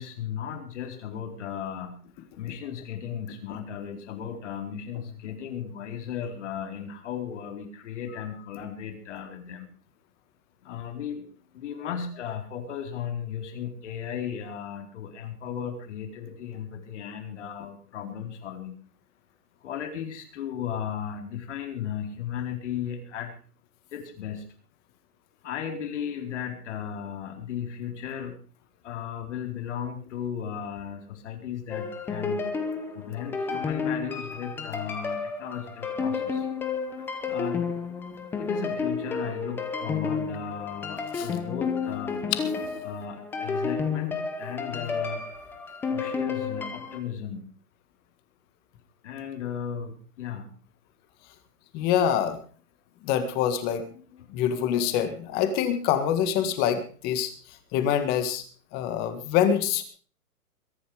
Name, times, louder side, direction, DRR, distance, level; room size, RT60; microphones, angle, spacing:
voice 1, 0.0-2.0 2.4-9.7 10.6-11.3 11.5-18.7 19.6-23.4 23.9-24.4 25.4-28.4 28.8-32.5 32.9-36.5 37.3-37.7 38.1-42.3 42.8-45.3 45.8-47.4 49.0-50.5 53.9-54.0 54.3-54.9, left 8 dB, 50° left, 5 dB, 4.2 m, -35 dB
sound 1, 31.7-47.0, left 5 dB, 5° left, 0.8 m, -31 dB
voice 2, 51.7-52.4 53.0-53.9 54.3-57.3 57.7-58.4 58.7-59.8, left 9 dB, 20° left, 10 dB, 1.8 m, -25 dB
22.5 x 10.0 x 5.0 m, 0.42 s
hypercardioid pair, 160°, 46 cm